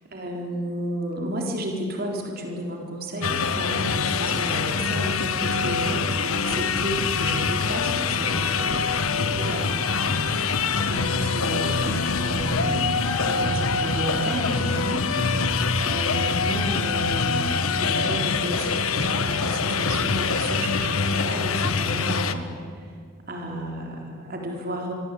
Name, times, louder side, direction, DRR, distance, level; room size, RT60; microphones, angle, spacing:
voice 1, 0.1-9.8 10.1-10.3 10.6-15.0 15.8-22.5 22.7-22.9 23.3-24.9, right 1 dB, 45° right, 1 dB, 4.0 m, -32 dB
sound 1, 3.2-22.3, left 4 dB, 85° left, 1.4 m, -24 dB
26.0 x 24.5 x 8.5 m, 2.2 s
head